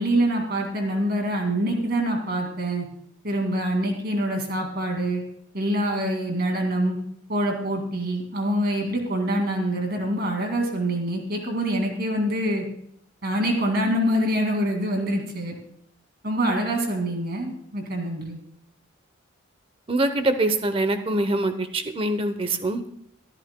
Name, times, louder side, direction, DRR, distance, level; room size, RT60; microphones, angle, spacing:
voice 1, 0.0-2.9 3.2-5.2 5.5-7.0 7.3-12.7 13.2-15.5 16.2-18.4, right 1 dB, 50° right, 2 dB, 2.2 m, -25 dB
voice 2, 19.9-22.9, right 2 dB, 25° right, 9 dB, 0.7 m, -24 dB
22.5 x 10.5 x 2.2 m, 0.70 s
head